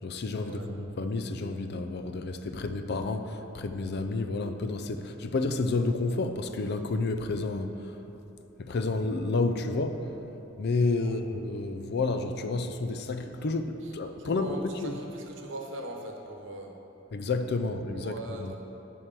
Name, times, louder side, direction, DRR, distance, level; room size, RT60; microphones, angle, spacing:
voice 1, 0.0-8.0 8.6-10.1 10.6-15.0 17.1-18.5, left 3 dB, 55° left, 8 dB, 0.5 m, -30 dB
voice 2, 14.2-16.7 18.0-18.6, right 1 dB, 65° right, 1 dB, 1.0 m, -40 dB
8.9 x 4.7 x 6.7 m, 3.0 s
head